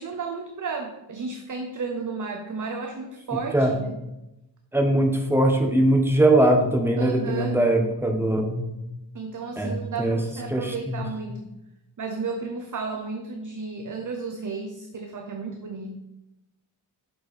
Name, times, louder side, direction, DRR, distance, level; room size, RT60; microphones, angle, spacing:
voice 1, 0.0-4.0 7.0-7.6 9.1-11.5 12.0-16.0, right 4 dB, 40° right, 5 dB, 0.7 m, -33 dB
voice 2, 4.7-8.7 9.6-10.2 10.5-11.1, right 1 dB, 5° right, 3 dB, 1.0 m, -21 dB
6.2 x 5.4 x 4.2 m, 0.95 s
wide cardioid pair, 75°, 46 cm